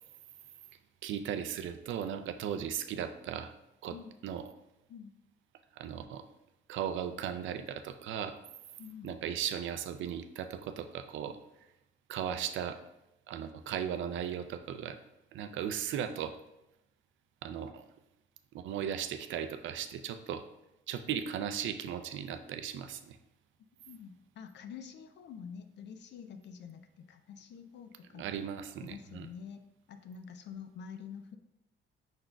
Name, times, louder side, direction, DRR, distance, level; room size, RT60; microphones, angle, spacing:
voice 1, 1.0-3.5 3.8-4.0 4.2-4.4 5.8-6.3 6.7-8.4 9.0-11.4 12.1-12.8 13.3-15.0 15.3-16.3 17.4-17.8 18.5-20.4 20.9-23.2 28.1-29.3, right 9 dB, 75° right, 9 dB, 0.4 m, -37 dB
voice 2, 8.8-9.1 23.9-28.3 28.8-29.6 29.9-31.4, left 7 dB, 65° left, 9 dB, 0.5 m, -47 dB
5.3 x 3.8 x 2.3 m, 0.88 s
cardioid pair, 90°, 20 cm